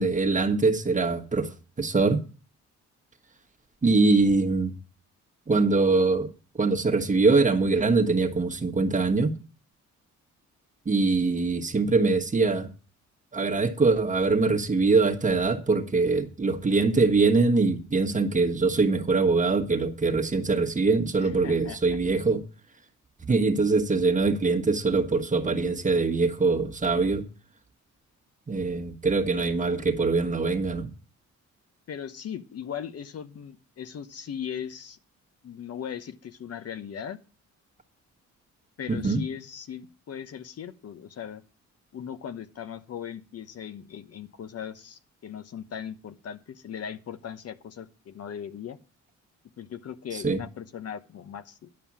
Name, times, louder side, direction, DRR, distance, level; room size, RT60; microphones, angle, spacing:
voice 1, 0.0-2.2 3.8-4.8 5.5-6.3 6.6-9.3 10.8-12.7 13.3-22.4 23.2-27.3 28.5-30.9 38.9-39.2 50.1-50.4, right 3 dB, 25° right, 1.3 m, -23 dB
voice 2, 21.2-22.0 31.9-35.0 35.4-37.2 38.8-41.4 41.9-48.8 49.6-51.7, left 8 dB, 55° left, 1.0 m, -38 dB
10.5 x 5.6 x 7.4 m
cardioid pair, 90°, 30 cm